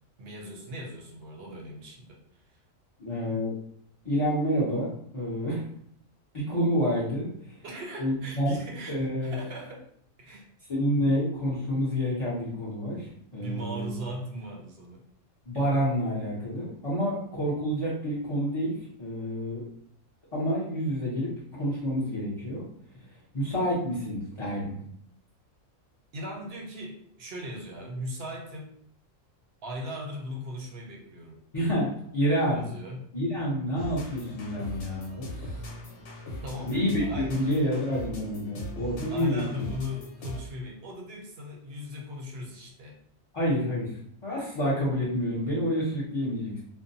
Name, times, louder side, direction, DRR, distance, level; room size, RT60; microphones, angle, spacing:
voice 1, 0.2-2.4 7.6-9.9 10.2-10.5 13.4-15.0 26.1-28.7 29.6-31.4 32.5-33.1 36.4-37.5 39.1-43.0, equal, 60° right, 0 dB, 0.7 m, -38 dB
voice 2, 3.0-3.5 4.0-5.6 6.3-7.3 8.0-8.6 8.9-9.4 10.7-13.9 15.5-19.6 20.3-22.6 22.9-23.0 23.3-24.9 31.5-32.6 33.1-35.6 36.6-39.7 43.3-43.9 44.2-46.5, equal, 35° left, -8 dB, 0.5 m, -28 dB
sound 1, 33.8-40.6, left 1 dB, 65° left, 1.0 m, -40 dB
2.6 x 2.1 x 2.6 m, 0.68 s
omnidirectional pair, 1.4 m